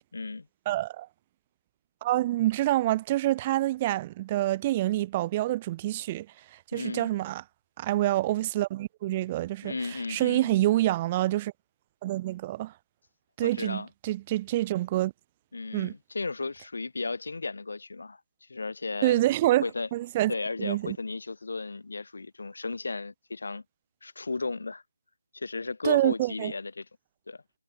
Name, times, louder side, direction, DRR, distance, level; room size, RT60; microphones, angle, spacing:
voice 1, 0.1-0.5 6.7-7.1 9.6-10.5 13.4-13.9 15.5-18.2 18.5-19.3 19.6-19.9 20.3-23.6 24.0-24.8 25.3-26.9 27.3-27.4, left 3 dB, 50° left, 2.0 m, -34 dB
voice 2, 0.7-1.1 2.0-6.3 6.5-7.4 7.8-11.5 12.0-12.7 13.4-15.1 15.7-15.9 19.0-19.6 19.9-20.3 20.6-21.0 25.8-26.5, right 15 dB, 15° right, 1.0 m, -27 dB
figure-of-eight pair, 160°, 0 cm